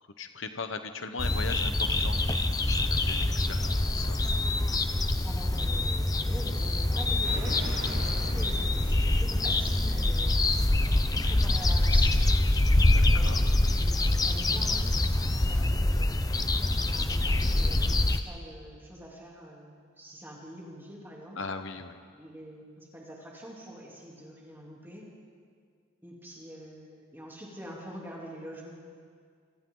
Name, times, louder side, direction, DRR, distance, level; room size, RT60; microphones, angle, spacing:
voice 1, 0.2-2.2 2.6-4.2 12.8-13.4 21.4-22.0, left 4 dB, 65° left, 7 dB, 1.2 m, -38 dB
sound 1, 1.2-18.2, left 1 dB, 15° left, 0.7 m, -25 dB
voice 2, 5.2-10.3 11.1-12.2 13.1-16.2 16.9-21.4 22.1-25.1 26.0-28.7, equal, 10° right, -4 dB, 3.4 m, -45 dB
sound 2, 7.2-10.1 10.4-10.5, right 1 dB, 70° right, 3.6 m, -42 dB
28.5 x 27.0 x 4.0 m, 2.1 s
head